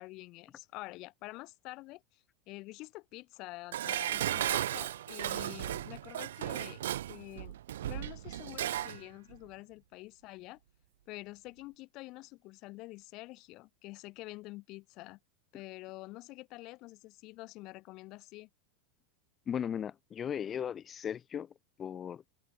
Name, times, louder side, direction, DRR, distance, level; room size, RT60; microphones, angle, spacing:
voice 1, 0.0-6.8 7.1-7.6 7.8-10.6 11.1-15.2 15.5-18.5, left 21 dB, 45° left, 4.2 m, -47 dB
Dishes pots and pans, 3.7-9.0 9.3-9.4, right 12 dB, 90° right, 0.5 m, -35 dB
voice 2, 19.5-21.5 21.8-22.2, left 8 dB, 25° left, 1.1 m, -37 dB
supercardioid pair, 135°, 0 cm